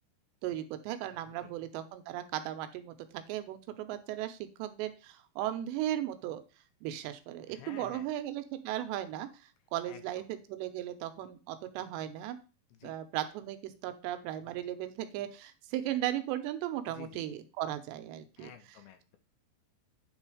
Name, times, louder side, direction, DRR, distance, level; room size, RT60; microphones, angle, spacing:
voice 1, 0.4-6.4 6.8-9.3 9.7-12.4 12.8-18.5, right 12 dB, 85° right, 9 dB, 2.9 m, -36 dB
voice 2, 7.5-8.1 9.9-10.3 12.7-13.0 16.9-17.2 18.4-19.2, left 9 dB, 80° left, 7 dB, 2.2 m, -51 dB
9.8 x 3.8 x 4.8 m, 0.33 s
omnidirectional pair, 5.0 m